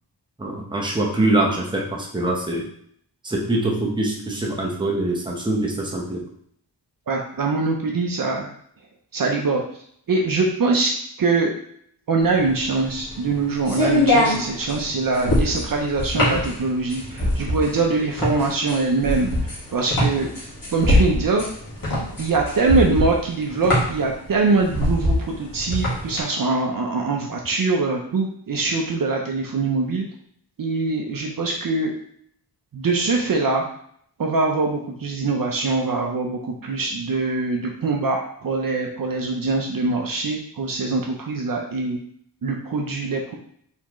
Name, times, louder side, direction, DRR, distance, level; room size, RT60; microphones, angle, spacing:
voice 1, 0.4-2.7 3.2-6.2, right 2 dB, 10° right, -2 dB, 0.8 m, -23 dB
voice 2, 7.1-8.5 9.1-9.6 10.1-10.9 11.2-11.5 12.1-19.3 19.7-20.3 20.7-21.4 22.2-30.0 30.6-31.9 32.7-33.6 34.2-42.0 42.4-43.3, right 3 dB, 55° right, 1 dB, 0.6 m, -23 dB
sound 1, 12.3-26.2, left 1 dB, 55° left, 1.8 m, -23 dB
4.2 x 3.6 x 3.0 m, 0.65 s
wide cardioid pair, 145°, 42 cm